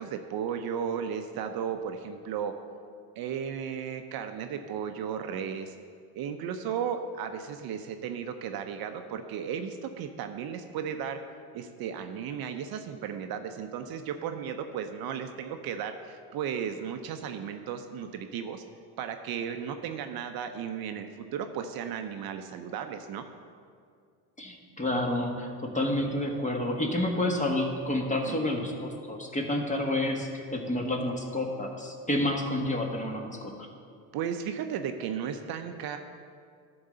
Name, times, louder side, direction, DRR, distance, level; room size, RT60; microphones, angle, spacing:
voice 1, 0.0-2.5 3.2-5.7 6.2-11.2 11.5-18.6 19.0-23.2 28.3-28.9 34.1-36.0, right 8 dB, 55° right, 7 dB, 0.7 m, -35 dB
voice 2, 24.4-33.7, left 1 dB, 15° left, 2 dB, 1.4 m, -29 dB
11.0 x 4.0 x 6.7 m, 2.2 s
hypercardioid pair, 75°, 45 cm